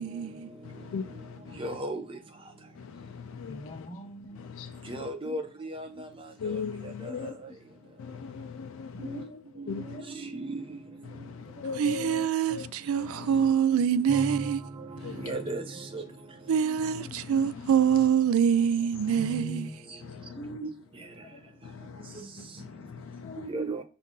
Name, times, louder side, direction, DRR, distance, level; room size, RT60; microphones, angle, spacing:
voice 1, 0.0-0.5 11.7-14.6 16.5-19.7, right 8 dB, 75° right, 0.3 m, -25 dB
voice 2, 0.6-1.6 2.8-3.7 4.5-4.9 6.4-7.3 8.0-9.2 9.7-10.0 11.1-12.7 13.0-13.5 15.0-15.2 17.1-17.3 19.0-19.1 20.1-20.4 21.6-22.2 22.6-23.4, left 6 dB, 70° left, 0.3 m, -39 dB
voice 3, 1.6-2.0 4.9-6.1 6.5-6.6 10.2-10.6 13.0-13.1 13.4-13.5 14.1-14.5 15.2-15.6 15.9-16.0 19.2-19.7 20.6-20.7 23.4-23.8, right 2 dB, 25° right, 0.6 m, -34 dB
voice 4, 3.5-4.5 5.2-5.4 5.9-6.0 7.1-7.3 8.9-9.5 9.7-10.3 11.1-12.1 15.4-15.7 16.6-17.7 20.3-20.7 21.3-22.1 22.4-22.5 23.2-23.6, left 1 dB, 30° left, 0.7 m, -46 dB
5.4 x 2.5 x 3.7 m
head